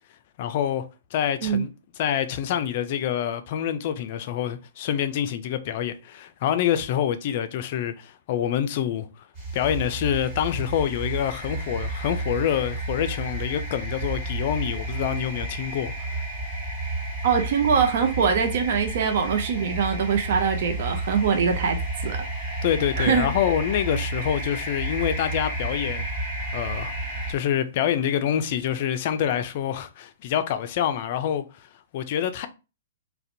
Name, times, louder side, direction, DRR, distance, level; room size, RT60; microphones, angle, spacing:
voice 1, 0.4-0.9 1.1-1.7 2.0-9.1 9.5-15.9 22.6-26.0 26.5-26.9 27.3-31.7 31.9-32.5, left 10 dB, 50° left, 0.3 m, -26 dB
sound 1, 9.3-27.3, right 2 dB, 35° right, 1.5 m, -31 dB
voice 2, 17.2-22.2 22.4-22.6 23.0-23.3, right 6 dB, 60° right, 0.5 m, -23 dB
2.4 x 2.1 x 2.6 m
hypercardioid pair, 125°, 0 cm